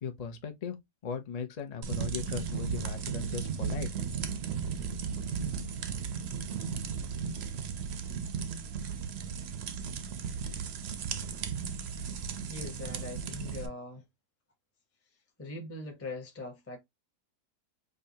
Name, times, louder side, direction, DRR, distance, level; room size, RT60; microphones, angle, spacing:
voice 1, 0.0-0.7 1.0-3.9, left 6 dB, 70° left, 0.3 m, -38 dB
sound 1, 1.8-13.7, right 6 dB, 65° right, 0.6 m, -35 dB
voice 2, 12.5-14.0 15.4-16.8, left 2 dB, 15° left, 0.6 m, -41 dB
5.0 x 2.3 x 2.7 m
omnidirectional pair, 1.7 m